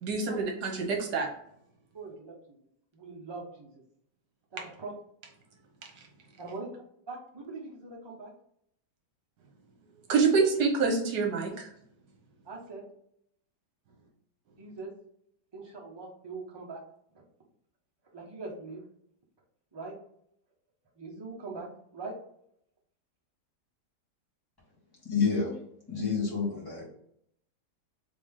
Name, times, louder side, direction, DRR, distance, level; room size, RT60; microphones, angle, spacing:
voice 1, 0.0-1.3 10.1-11.7, right 4 dB, 70° right, 2 dB, 1.5 m, -26 dB
voice 2, 1.9-2.3 2.9-3.7 4.8-4.9 6.4-6.7 7.1-8.3 12.4-12.8 14.6-14.9 15.5-16.8 18.1-18.8 19.7-20.0 21.0-21.7 21.9-22.1, right 3 dB, 20° right, -2 dB, 0.7 m, -41 dB
voice 3, 25.0-25.5 25.9-26.9, left 5 dB, 15° left, -6 dB, 1.7 m, -28 dB
3.8 x 3.6 x 3.6 m, 0.72 s
omnidirectional pair, 1.9 m